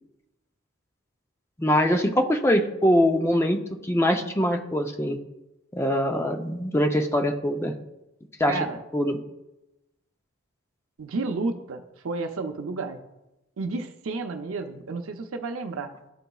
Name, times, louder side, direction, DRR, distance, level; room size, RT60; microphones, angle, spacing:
voice 1, 1.6-5.2 5.7-7.7 8.4-8.5 8.9-9.2, equal, 10° left, 4 dB, 0.5 m, -23 dB
voice 2, 8.5-8.8 11.0-13.0 13.6-15.9, right 3 dB, 85° right, 5 dB, 0.6 m, -31 dB
11.5 x 3.9 x 2.3 m, 0.94 s
head